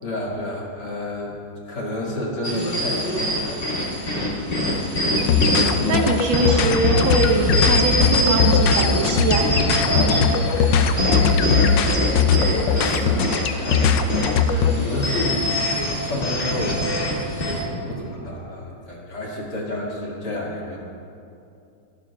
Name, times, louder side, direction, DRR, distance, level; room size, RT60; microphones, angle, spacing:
voice 1, 0.0-1.3 1.7-4.0 9.8-20.8, left 1 dB, 50° left, -4 dB, 2.7 m, -31 dB
sound 1, 2.4-17.6, left 1 dB, 25° left, 2.0 m, -24 dB
sound 2, 5.2-14.8, left 6 dB, 70° left, 1.2 m, -20 dB
voice 2, 5.5-9.5, right 3 dB, 70° right, 2 dB, 1.7 m, -23 dB
24.0 x 11.5 x 2.3 m, 2.6 s
omnidirectional pair, 2.3 m